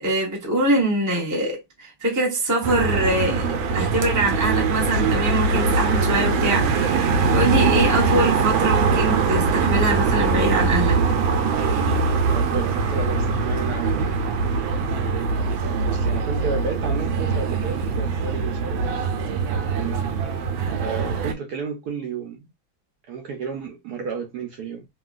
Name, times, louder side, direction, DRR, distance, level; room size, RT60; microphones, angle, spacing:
voice 1, 0.0-3.5 3.7-11.0, right 2 dB, 20° right, 0.5 m, -23 dB
sound 1, 2.6-21.3, right 4 dB, 85° right, 1.4 m, -22 dB
voice 2, 12.3-14.2 15.8-19.1 19.6-20.0 20.8-22.5 23.1-24.9, right 5 dB, 65° right, 1.0 m, -32 dB
2.9 x 2.8 x 2.3 m
omnidirectional pair, 2.1 m